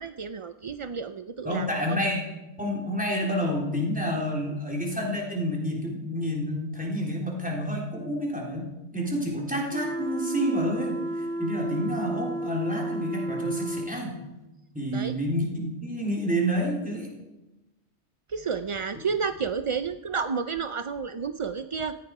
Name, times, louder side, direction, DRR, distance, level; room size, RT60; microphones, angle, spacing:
voice 1, 0.0-2.0 14.9-15.1 18.3-22.0, right 5 dB, 50° right, 10 dB, 0.4 m, -31 dB
voice 2, 1.4-2.2 2.6-14.2 14.7-17.1, equal, 5° right, -2 dB, 3.7 m, -29 dB
sound 1, 9.7-14.0, right 1 dB, 90° right, 1.6 m, -32 dB
17.0 x 15.5 x 4.8 m, 1.0 s
omnidirectional pair, 1.2 m